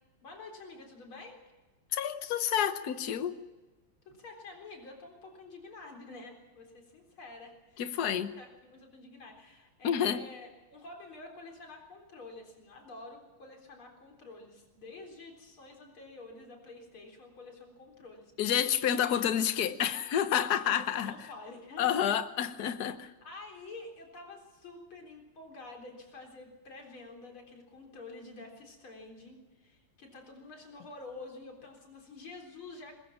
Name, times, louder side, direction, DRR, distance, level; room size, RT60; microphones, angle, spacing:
voice 1, 0.2-1.4 4.1-18.3 20.6-22.1 23.2-32.9, left 3 dB, 85° left, 4.7 m, -48 dB
voice 2, 1.9-3.3 7.8-8.3 9.8-10.2 18.4-21.1 21.8-23.1, left 9 dB, 55° left, 1.5 m, -29 dB
21.0 x 21.0 x 7.3 m
omnidirectional pair, 2.2 m